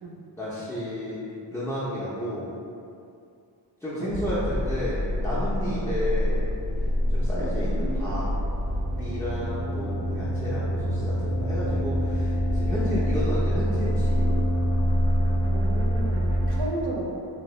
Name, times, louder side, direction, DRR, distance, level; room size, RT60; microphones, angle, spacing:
voice 1, 0.4-1.2 1.5-2.5 3.8-6.5 7.1-8.3 9.0-14.4 16.5-16.6, left 1 dB, 5° left, -11 dB, 0.4 m, -32 dB
sound 1, 4.1-16.6, equal, 90° right, 0.8 m, -26 dB
voice 2, 7.3-8.2 12.9-13.0 15.4-17.2, right 2 dB, 60° right, -2 dB, 0.5 m, -34 dB
2.7 x 2.5 x 3.0 m, 2.5 s
wide cardioid pair, 110°, 45 cm